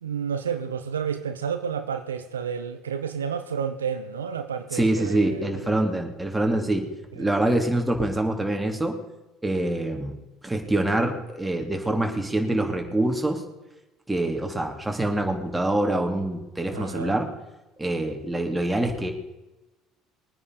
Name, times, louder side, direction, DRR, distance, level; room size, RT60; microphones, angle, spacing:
voice 1, 0.0-5.8 7.2-7.3 16.7-17.2, right 7 dB, 85° right, 0.7 m, -31 dB
voice 2, 4.7-6.9 7.1-9.0 9.4-10.1 10.4-13.4 14.1-17.3 17.8-19.1, right 1 dB, 10° right, 3.0 m, -25 dB
21.5 x 9.7 x 5.0 m
hypercardioid pair, 60°, 0 cm